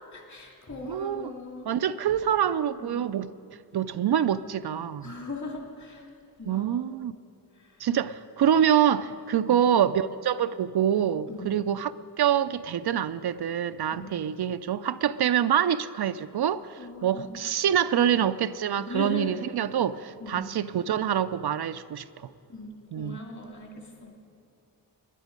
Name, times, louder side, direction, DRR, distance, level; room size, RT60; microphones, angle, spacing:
voice 1, 0.1-1.7 2.8-3.1 5.0-6.0 6.4-6.7 9.4-9.5 11.3-11.6 13.9-14.1 16.8-17.4 18.1-18.3 18.9-19.3 20.2-20.5 22.5-24.1, left 2 dB, 45° left, 1 dB, 2.4 m, -39 dB
voice 2, 0.8-1.4 1.7-3.3 3.7-5.1 6.5-7.1 7.8-22.0 22.9-23.2, right 9 dB, 65° right, 12 dB, 0.5 m, -26 dB
19.0 x 10.5 x 5.2 m, 2.6 s
cardioid pair, 65°, 42 cm